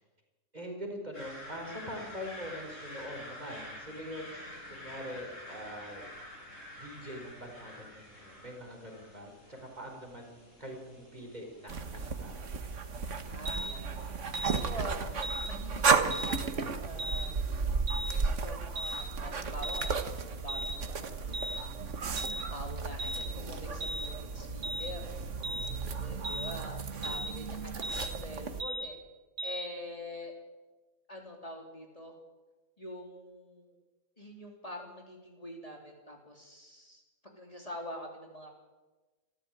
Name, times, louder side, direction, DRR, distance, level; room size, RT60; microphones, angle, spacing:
voice 1, 0.5-6.1 6.7-12.4 22.6-22.7 25.4-26.0, equal, 30° right, 2 dB, 4.9 m, -44 dB
sound 1, 1.1-15.1, left 1 dB, 70° left, 8.1 m, -49 dB
sound 2, 11.7-28.6, right 5 dB, 65° right, 1.7 m, -34 dB
voice 2, 13.3-14.0 14.7-15.1 15.5-17.3 18.2-19.9 20.2-21.8 22.5-25.1 26.0-29.0 29.4-30.3 31.1-32.2 32.8-33.7 34.2-38.5, left 1 dB, 25° left, 1 dB, 3.4 m, -45 dB
sound 3, 13.5-13.7 14.3-14.6 15.2-15.5 16.1-16.4 17.0-17.3 17.9-18.2 18.8-19.0 19.6-19.9 20.5-20.8 21.3-21.6 22.2-22.4 23.0-23.3 23.8-24.1 24.6-24.9 25.4-25.7 26.2-26.5 27.0-27.3 27.8-28.1 28.6-28.9 29.4-29.7, right 1 dB, 85° right, 3.0 m, -36 dB
28.0 x 14.0 x 9.0 m, 1.2 s
omnidirectional pair, 1.4 m